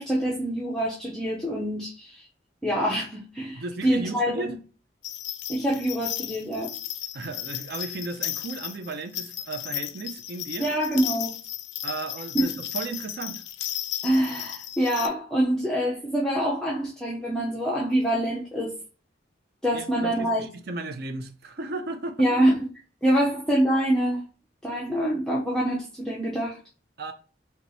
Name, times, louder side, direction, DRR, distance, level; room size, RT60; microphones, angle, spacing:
voice 1, 0.0-2.3 2.6-4.5 5.5-6.7 10.6-11.3 12.3-12.5 14.0-18.7 19.6-20.4 22.2-22.7 23.0-24.2 24.6-26.6, right 1 dB, 5° left, 0.5 m, -25 dB
voice 2, 3.5-4.5 7.1-10.7 11.8-13.4 19.7-22.3 23.1-23.2 27.0-27.1, right 3 dB, 55° right, 0.5 m, -35 dB
sound 1, 5.0-15.1, left 12 dB, 60° left, 0.3 m, -34 dB
3.0 x 2.3 x 3.9 m
head